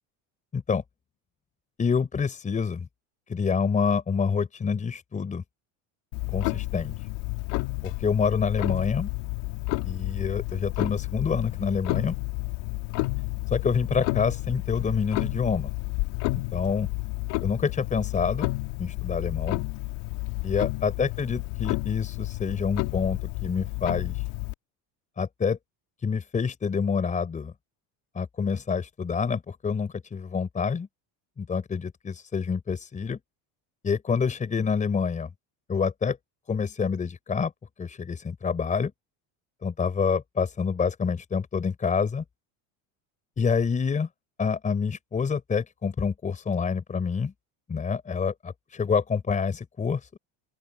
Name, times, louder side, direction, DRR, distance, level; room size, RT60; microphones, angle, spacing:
voice 1, 1.8-2.9 3.3-5.4 6.3-6.9 7.8-9.1 9.8-12.1 13.5-15.7 16.3-16.9 17.4-18.5 18.8-19.6 20.4-24.2 25.2-25.6 26.0-27.5 28.1-30.9 31.4-33.2 33.8-35.3 35.7-36.2 36.5-37.5 37.8-38.9 39.6-42.2 43.4-44.1 44.4-47.3 47.7-50.2, left 5 dB, 20° left, 5.1 m, -27 dB
Clock, 6.1-24.5, left 23 dB, 70° left, 3.8 m, -31 dB
open air
cardioid pair, 165°, 40 cm